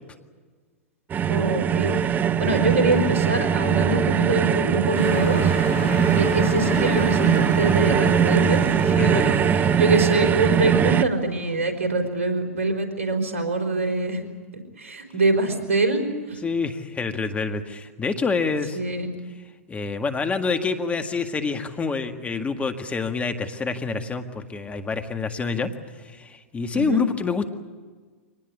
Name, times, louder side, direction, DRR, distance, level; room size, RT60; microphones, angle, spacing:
sound 1, 1.1-11.0, right 8 dB, 25° right, 0.8 m, -21 dB
voice 1, 1.3-2.0 2.4-5.6 6.2-14.2 14.8-16.4 18.7-19.1 26.7-27.0, right 2 dB, 75° right, 6 dB, 4.5 m, -24 dB
sound 2, 4.9-11.5, left 2 dB, 70° left, 7.4 m, -34 dB
voice 2, 5.7-6.1 8.9-9.3 16.4-18.8 19.7-25.7 26.0-27.5, left 4 dB, 15° left, 7 dB, 1.8 m, -27 dB
25.0 x 19.5 x 8.6 m, 1.4 s
hypercardioid pair, 105°, 7 cm